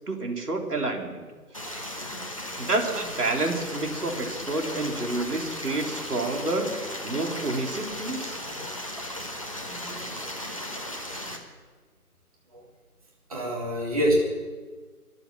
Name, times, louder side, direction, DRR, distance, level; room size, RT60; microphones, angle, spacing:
voice 1, 0.1-1.3 1.6-1.8 2.6-8.4, right 2 dB, 80° right, 1 dB, 3.6 m, -29 dB
Stream, 1.5-11.4, left 1 dB, 20° left, 1.0 m, -36 dB
voice 2, 9.7-10.4 12.5-12.6 13.3-14.1, right 1 dB, 25° right, -3 dB, 2.4 m, -29 dB
23.5 x 8.0 x 7.3 m, 1.4 s
figure-of-eight pair, 175°, 46 cm